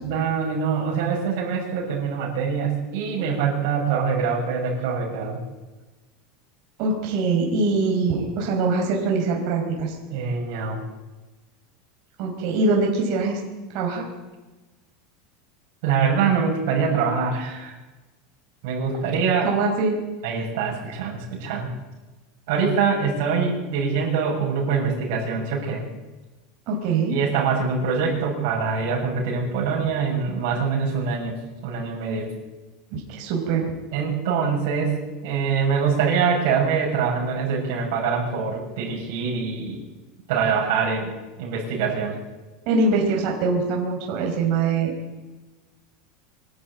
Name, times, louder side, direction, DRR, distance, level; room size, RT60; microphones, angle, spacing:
voice 1, 0.0-5.4 10.1-10.8 15.8-17.8 18.6-19.5 20.2-21.7 22.5-25.8 27.1-31.4 31.6-32.3 33.9-34.9 35.2-39.8 40.3-42.2, right 6 dB, 65° right, -3 dB, 6.5 m, -24 dB
voice 2, 6.8-9.9 12.2-13.4 13.7-14.0 19.4-20.0 26.7-27.1 32.9-33.7 42.6-44.9, right 3 dB, 50° right, 0 dB, 5.0 m, -23 dB
24.5 x 12.5 x 9.0 m, 1.2 s
supercardioid pair, 155°, 0 cm